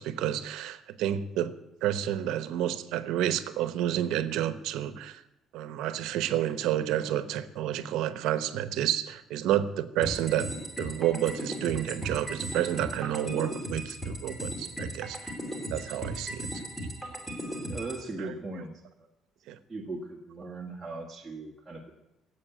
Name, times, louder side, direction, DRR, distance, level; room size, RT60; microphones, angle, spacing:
voice 1, 0.0-1.5 1.8-5.2 5.5-10.5 10.8-15.3 15.7-16.5 19.5-19.6, right 11 dB, 80° right, 11 dB, 1.0 m, -30 dB
sound 1, 10.0-18.0, equal, 5° left, 2.7 m, -37 dB
voice 2, 17.7-19.1 19.7-21.9, right 3 dB, 10° right, -4 dB, 1.7 m, -39 dB
16.0 x 8.3 x 9.1 m, 0.91 s
cardioid pair, 175°, 0 cm